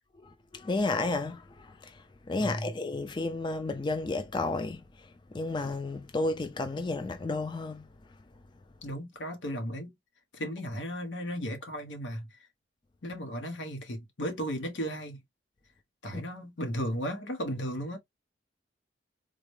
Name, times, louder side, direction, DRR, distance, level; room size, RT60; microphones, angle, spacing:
voice 1, 0.5-1.4 2.3-4.8 5.3-7.9, left 2 dB, 25° left, 0.3 m, -31 dB
voice 2, 2.4-2.8 8.8-9.9 10.3-12.4 13.0-15.2 16.0-18.0, equal, 80° left, 1.0 m, -35 dB
3.9 x 2.1 x 3.1 m
head